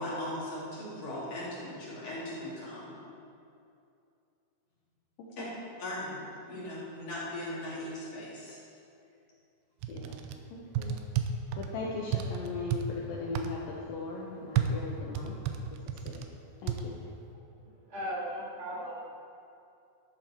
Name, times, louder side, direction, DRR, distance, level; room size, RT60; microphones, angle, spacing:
voice 1, 0.0-2.9 5.4-5.5 5.8-8.6, left 1 dB, 40° left, -8 dB, 3.5 m, -38 dB
sound 1, 9.8-10.4 10.7-11.7 12.1-12.8 13.4-13.5 14.6-16.3 16.7-16.8, right 10 dB, 85° right, 2.6 m, -31 dB
voice 2, 10.5-11.0 11.6-15.3 15.7-16.2 16.6-16.9, left 3 dB, 75° left, -3 dB, 2.1 m, -38 dB
voice 3, 17.8-19.1, equal, 65° right, -7 dB, 0.4 m, -37 dB
12.5 x 8.9 x 4.3 m, 2.6 s
omnidirectional pair, 5.1 m